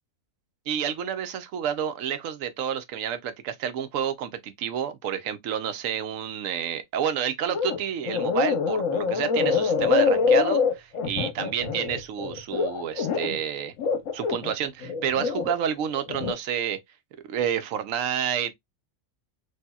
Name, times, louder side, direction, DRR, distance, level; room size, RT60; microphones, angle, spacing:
voice 1, 0.7-13.7 14.1-16.8 17.3-18.5, right 9 dB, 75° right, 1.0 m, -29 dB
sound 1, 7.5-7.8 8.0-13.4 13.8-15.5 16.0-16.3, left 5 dB, 70° left, 1.2 m, -25 dB
4.2 x 2.7 x 2.3 m
omnidirectional pair, 1.4 m